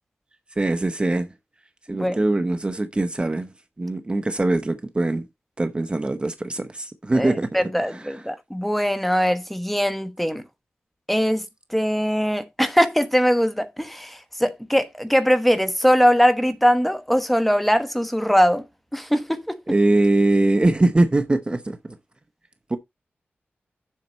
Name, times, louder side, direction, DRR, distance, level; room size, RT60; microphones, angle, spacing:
voice 1, 0.6-1.3 1.9-3.5 3.8-5.3 5.6-7.5 7.9-8.0 19.7-22.0 22.7-22.8, right 2 dB, 25° right, 0.8 m, -22 dB
voice 2, 7.1-10.4 11.1-11.4 11.7-18.6 18.9-19.6, equal, 5° left, 1.2 m, -21 dB
7.5 x 6.4 x 4.2 m
wide cardioid pair, 115°, 4 cm